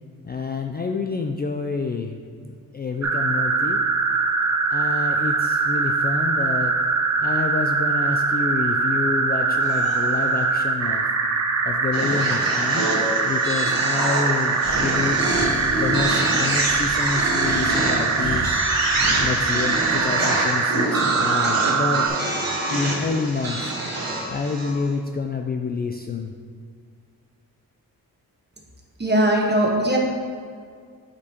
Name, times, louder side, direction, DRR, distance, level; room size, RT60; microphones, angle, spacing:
voice 1, 0.2-3.8 4.7-6.7 7.2-11.1 11.6-15.4 15.7-18.6 19.2-22.2 22.7-24.0 24.3-26.3, left 4 dB, 25° left, 3 dB, 0.4 m, -28 dB
sound 1, 3.0-22.1, right 4 dB, 45° right, 0.7 m, -22 dB
sound 2, 9.6-10.4 11.9-24.9, right 2 dB, 65° right, 1.6 m, -26 dB
Breathing, 14.6-19.4, left 1 dB, 80° left, 1.4 m, -34 dB
voice 2, 29.0-30.0, right 1 dB, 30° right, 0 dB, 1.2 m, -19 dB
8.0 x 5.1 x 2.9 m, 2.1 s
cardioid pair, 70°, 37 cm